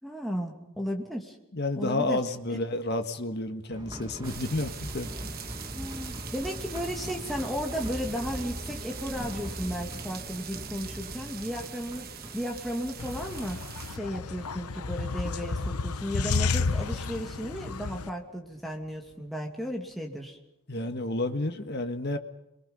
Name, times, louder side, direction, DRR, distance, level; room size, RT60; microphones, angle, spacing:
voice 1, 0.0-1.4 1.8-2.2 2.5-2.6 5.7-13.6 13.9-20.4, equal, ahead, 0 dB, 2.5 m, -34 dB
voice 2, 1.5-5.3 20.7-22.2, left 2 dB, 45° left, 7 dB, 1.6 m, -31 dB
sound 1, 3.7-19.2 19.4-19.5 19.9-20.0, equal, 20° right, 1.9 m, -42 dB
sound 2, 4.2-14.0, right 8 dB, 40° right, 1.2 m, -43 dB
sound 3, 13.0-18.1, left 4 dB, 90° left, 0.9 m, -31 dB
30.0 x 23.0 x 5.5 m, 0.83 s
head